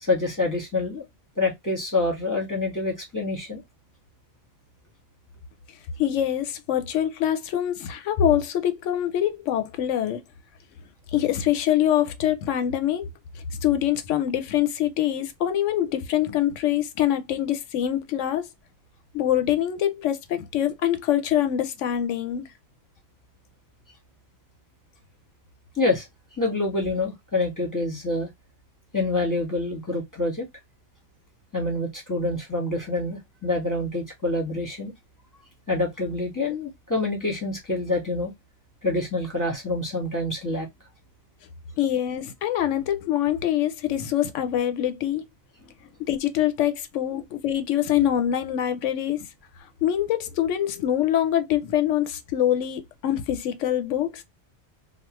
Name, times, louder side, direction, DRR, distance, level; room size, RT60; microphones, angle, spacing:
voice 1, 0.0-1.0 1.4-3.6 25.7-26.1 26.4-28.3 28.9-30.5 31.5-34.9 35.7-38.3 38.8-40.7 47.1-47.2, left 2 dB, 15° left, 1.3 m, -26 dB
voice 2, 6.0-10.2 11.1-13.1 13.4-18.5 19.1-22.4 41.8-45.2 46.1-49.3 49.8-54.2, left 11 dB, 80° left, 0.9 m, -24 dB
3.1 x 2.3 x 3.0 m
omnidirectional pair, 1.3 m